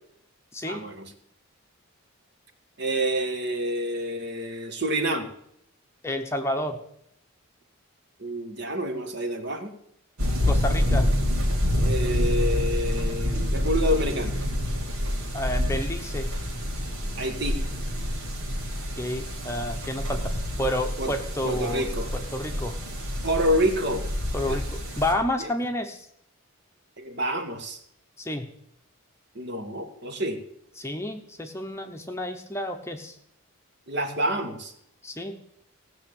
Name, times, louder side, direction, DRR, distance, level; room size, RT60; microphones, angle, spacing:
voice 1, 0.7-1.1 2.8-5.3 8.2-9.7 11.8-14.3 17.2-17.6 21.0-21.1 21.4-22.1 23.2-24.1 24.5-24.6 25.4-25.5 27.0-27.8 29.3-30.4 33.9-34.7, equal, 50° right, 6 dB, 1.8 m, -28 dB
voice 2, 6.0-6.8 10.5-11.1 15.3-16.3 19.0-20.3 20.6-21.8 22.1-22.8 24.3-26.1 28.2-28.5 30.8-33.2 35.0-35.4, left 1 dB, 10° left, 4 dB, 0.9 m, -30 dB
sound 1, 10.2-25.1, left 1 dB, 85° right, 3.5 m, -27 dB
16.5 x 6.4 x 8.7 m, 0.74 s
head